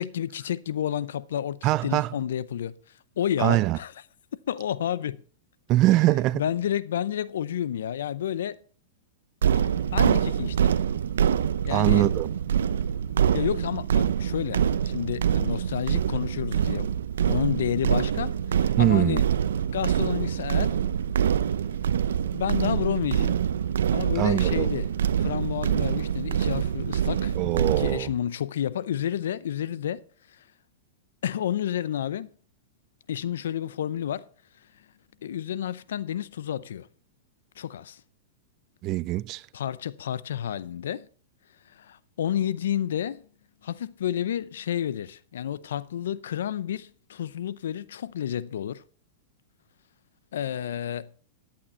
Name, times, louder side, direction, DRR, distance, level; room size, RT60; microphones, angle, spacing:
voice 1, 0.0-2.7 3.2-3.9 4.5-5.2 6.3-8.6 9.9-10.8 11.6-12.1 13.3-16.9 17.3-19.2 19.7-20.8 22.3-23.4 23.9-24.9 25.2-27.3 27.8-30.0 31.2-32.3 33.1-34.3 35.2-36.9 37.6-38.0 39.5-41.1 41.8-43.3 43.6-48.8 50.3-51.1, left 10 dB, 80° left, 0.6 m, -30 dB
voice 2, 1.6-2.1 3.4-3.8 5.7-6.4 11.6-12.3 18.8-19.2 24.2-24.7 27.4-28.1 38.8-39.5, right 16 dB, 35° right, 0.4 m, -23 dB
sound 1, 9.4-28.0, right 9 dB, 90° right, 0.6 m, -25 dB
11.0 x 8.6 x 4.3 m
hypercardioid pair, 140°, 0 cm